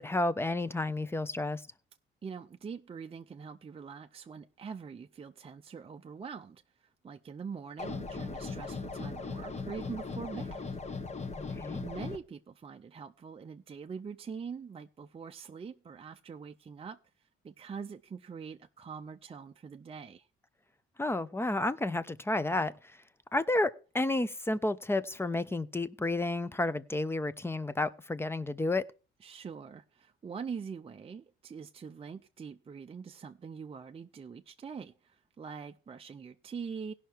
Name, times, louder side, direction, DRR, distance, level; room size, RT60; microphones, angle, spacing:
voice 1, 0.0-1.6 11.4-11.8 21.0-22.7 23.3-28.8, left 2 dB, 10° left, 0.7 m, -31 dB
voice 2, 2.2-10.7 11.8-20.3 29.2-36.9, right 6 dB, 30° right, 0.5 m, -44 dB
sound 1, 7.8-12.2, left 4 dB, 35° left, 1.2 m, -38 dB
17.0 x 5.8 x 4.5 m
cardioid pair, 90°, 20 cm